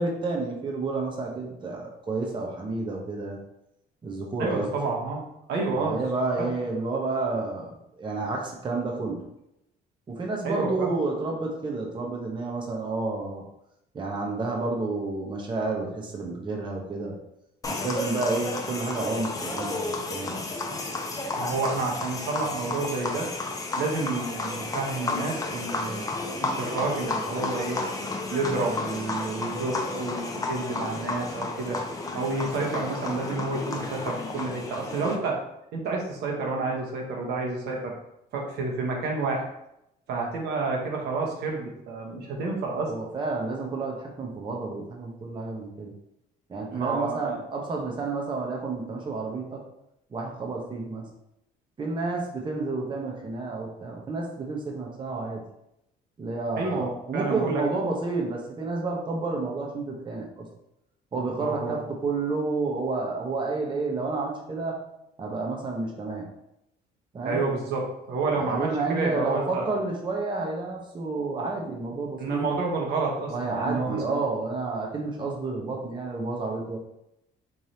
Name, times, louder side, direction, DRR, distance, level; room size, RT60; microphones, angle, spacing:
voice 1, 0.0-3.4 4.0-4.7 5.7-7.7 8.0-9.2 10.1-13.4 13.9-17.1 17.7-20.4 42.9-45.9 46.5-49.6 50.1-51.0 51.8-55.4 56.2-60.4 61.1-64.8 65.2-66.2 67.1-67.4 68.3-72.4 73.3-76.8, right 3 dB, 30° right, -1 dB, 0.9 m, -30 dB
voice 2, 4.4-5.2 5.5-6.0 6.4-6.5 10.4-10.9 21.4-23.3 23.8-27.8 28.3-31.8 32.1-35.4 35.7-37.9 38.3-39.5 40.1-42.9 46.7-47.5 56.6-57.6 61.4-61.8 67.2-69.7 72.2-74.2, right 3 dB, 75° right, -1 dB, 1.1 m, -29 dB
sound 1, 17.6-35.2, left 3 dB, 20° left, 0.6 m, -32 dB
4.6 x 3.2 x 2.8 m, 0.81 s
cardioid pair, 110°, 17 cm